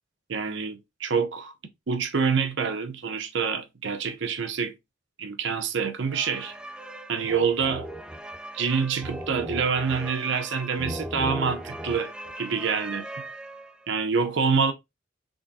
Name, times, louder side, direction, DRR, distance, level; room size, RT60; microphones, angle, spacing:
voice 1, 0.3-1.5 1.9-4.7 5.2-6.5 7.1-7.9 8.5-13.1 13.9-14.7, right 5 dB, 65° right, 0.7 m, -26 dB
sound 1, 6.1-13.9, right 1 dB, 5° right, 0.3 m, -38 dB
3.7 x 3.5 x 2.6 m
head